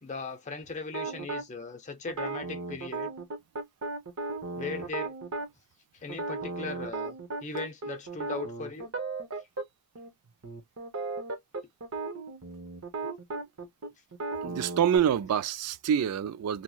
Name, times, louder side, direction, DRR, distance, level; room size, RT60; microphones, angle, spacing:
voice 1, 0.0-3.1 4.5-5.5 5.9-8.9, left 4 dB, 35° left, 0.6 m, -39 dB
sound 1, 0.9-1.4 2.1-5.5 6.1-9.6 9.9-10.1 10.4-15.0, right 3 dB, 65° right, 0.8 m, -36 dB
voice 2, 14.4-16.6, right 8 dB, 85° right, 0.3 m, -27 dB
2.8 x 2.8 x 2.3 m
head